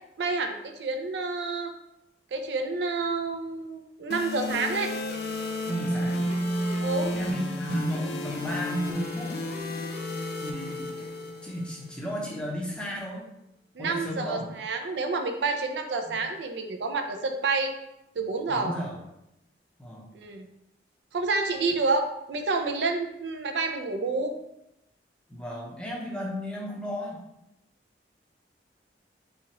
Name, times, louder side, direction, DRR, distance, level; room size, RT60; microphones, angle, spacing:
voice 1, 0.2-1.7 2.3-4.9 6.8-7.1 13.7-17.7 18.2-18.8 20.1-20.5 21.1-24.3, right 3 dB, 75° right, 5 dB, 0.4 m, -29 dB
sound 1, 4.1-12.1, left 1 dB, 60° left, 0.4 m, -32 dB
sound 2, 4.5-11.5, equal, 45° right, 1.0 m, -45 dB
voice 2, 5.7-6.3 7.1-9.3 10.4-11.1 11.4-13.2 13.8-14.5 16.1-16.2 18.5-19.0 19.8-20.1 25.3-27.2, equal, 5° left, -3 dB, 0.6 m, -33 dB
4.2 x 2.4 x 2.9 m, 0.85 s
head